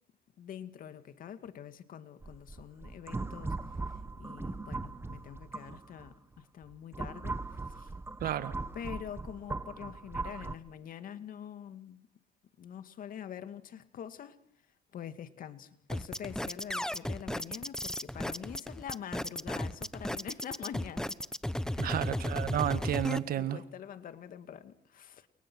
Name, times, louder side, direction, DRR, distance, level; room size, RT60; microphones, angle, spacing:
voice 1, 0.4-3.6 4.2-7.9 8.7-12.1 12.6-14.4 14.9-21.2 21.7-22.3 23.3-25.3, left 9 dB, 55° left, 2.2 m, -45 dB
sound 1, 2.2-6.1 6.6-10.5, right 3 dB, 15° right, 1.4 m, -39 dB
voice 2, 8.2-8.6 21.8-23.6, right 11 dB, 60° right, 1.5 m, -32 dB
sound 2, 15.9-23.2, left 1 dB, 5° left, 1.1 m, -34 dB
30.0 x 29.5 x 6.3 m
cardioid pair, 110°, 17 cm